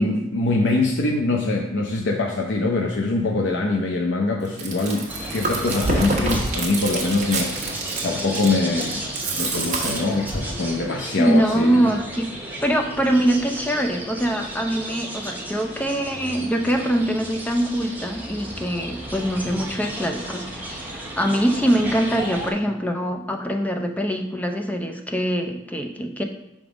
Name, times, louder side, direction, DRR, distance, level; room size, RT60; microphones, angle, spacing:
voice 1, 0.0-7.5 8.0-9.0 9.4-11.9, left 3 dB, 65° left, 1 dB, 0.6 m, -23 dB
Chewing mastication, 4.4-10.5, right 2 dB, 40° right, 1.2 m, -27 dB
sound 1, 5.1-22.5, right 1 dB, 10° right, 0.8 m, -34 dB
voice 2, 11.2-12.3 12.6-26.2, right 1 dB, 10° left, 4 dB, 0.5 m, -23 dB
5.9 x 3.6 x 5.0 m, 0.87 s
head